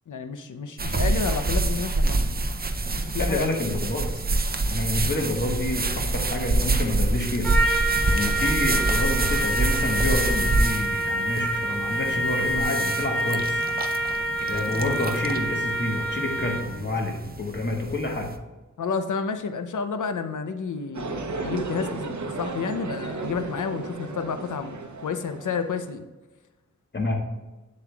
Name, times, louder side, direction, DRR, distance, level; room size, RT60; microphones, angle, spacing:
voice 1, 0.1-2.5 3.0-3.6 14.8-14.9 18.8-26.0, left 5 dB, 80° left, 8 dB, 0.6 m, -30 dB
sound 1, 0.8-18.4, right 2 dB, 30° right, 0.5 m, -27 dB
voice 2, 3.2-4.2 4.7-7.5 8.1-13.6 14.5-18.3 26.9-27.2, left 2 dB, 35° left, 1 dB, 1.4 m, -28 dB
Trumpet, 7.4-16.8, right 1 dB, 5° left, 1.1 m, -27 dB
sound 2, 20.9-25.9, right 3 dB, 70° right, 0.7 m, -34 dB
7.8 x 7.2 x 2.3 m, 1.1 s
wide cardioid pair, 70°, 30 cm